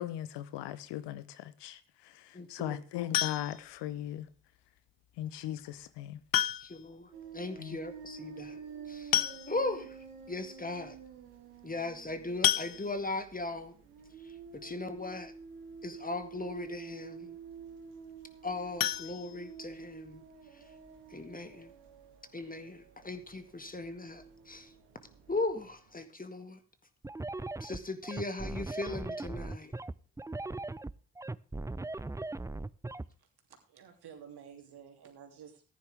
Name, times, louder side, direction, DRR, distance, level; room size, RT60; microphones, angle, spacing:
voice 1, 0.0-4.3 5.2-6.2 7.6-7.8, left 12 dB, 75° left, 0.9 m, -39 dB
voice 2, 2.3-2.8 6.6-8.6 8.9-10.0 10.3-11.0 11.6-13.8 14.2-15.3 15.8-17.4 18.4-20.2 20.5-20.7 21.1-21.7 22.3-24.7 25.3-26.6 27.6-29.7, left 2 dB, 20° left, 1.9 m, -38 dB
sound 1, 3.1-3.8 5.2-5.3 6.3-6.9 7.2-7.3 7.6-7.7 8.7-8.8 9.1-9.8 10.4-10.5 10.8-11.0 12.4-13.3 18.7-20.0 20.3-20.4 20.9-21.0 21.3-21.4, left 13 dB, 55° left, 0.6 m, -31 dB
sound 2, 7.1-26.0, right 6 dB, 85° right, 2.0 m, -50 dB
sound 3, 27.0-33.1, right 2 dB, 10° right, 0.5 m, -38 dB
voice 3, 33.7-35.6, right 8 dB, 65° right, 3.0 m, -51 dB
14.5 x 10.5 x 3.5 m
hypercardioid pair, 40°, 43 cm